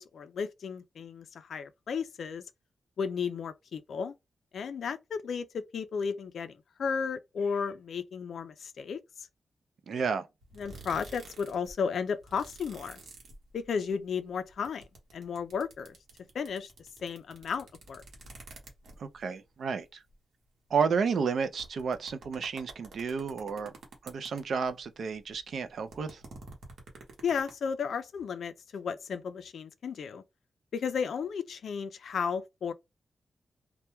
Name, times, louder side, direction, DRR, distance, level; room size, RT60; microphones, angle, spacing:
voice 1, 0.0-2.4 3.0-4.1 4.5-9.0 10.6-13.0 13.5-14.8 15.1-16.0 16.3-16.7 17.0-18.0 27.2-30.2 30.7-32.7, left 6 dB, 65° left, 0.3 m, -34 dB
voice 2, 9.9-10.3 19.0-20.0 20.7-23.7 24.0-26.2, right 5 dB, 60° right, 0.3 m, -31 dB
sound 1, 10.4-11.7 12.0-13.9 14.2-19.2 19.8-19.9 20.1-20.2 20.9-21.0 21.4-24.8 25.1-27.5, right 3 dB, 80° right, 0.9 m, -49 dB
2.2 x 2.2 x 2.9 m
wide cardioid pair, 180°, 0 cm